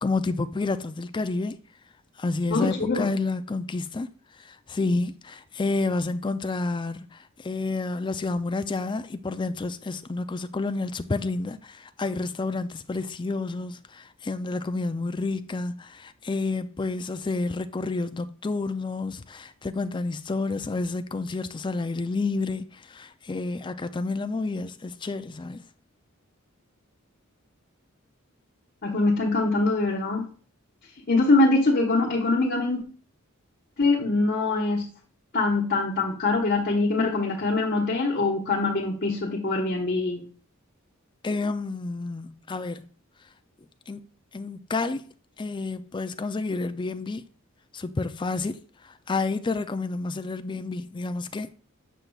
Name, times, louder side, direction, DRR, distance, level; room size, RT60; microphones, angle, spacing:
voice 1, 0.0-1.6 2.2-4.1 4.4-25.6 41.2-42.8 43.9-44.0 44.3-45.1 45.4-47.2 47.7-48.6 48.8-51.5, left 3 dB, 20° left, 0.4 m, -30 dB
voice 2, 2.5-3.1 28.8-30.2 31.1-32.8 33.8-34.8 35.3-40.2, left 2 dB, 45° left, 1.3 m, -23 dB
7.5 x 6.6 x 2.4 m
head